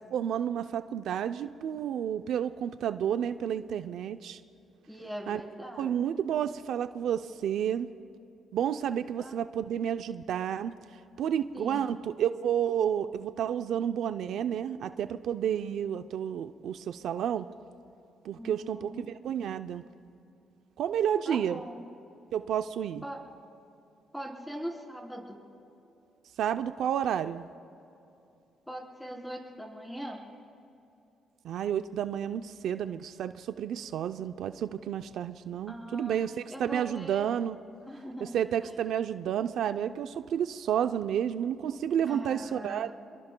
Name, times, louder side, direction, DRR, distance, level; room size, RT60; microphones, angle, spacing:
voice 1, 0.1-4.4 5.3-5.4 5.8-7.9 8.5-10.7 11.2-17.5 18.2-19.8 20.8-21.6 22.3-23.0 26.4-27.4 31.4-37.6 38.2-42.9, right 9 dB, 75° right, 10 dB, 0.5 m, -31 dB
voice 2, 4.9-5.9 9.2-9.4 11.5-12.0 15.8-16.2 18.3-19.1 21.2-21.8 23.0-23.2 24.1-25.4 28.7-30.2 35.7-36.1 36.5-37.2 37.9-38.4 42.1-42.9, equal, 5° left, 0 dB, 3.4 m, -41 dB
28.0 x 22.0 x 2.2 m, 2.8 s
cardioid pair, 90°, 0 cm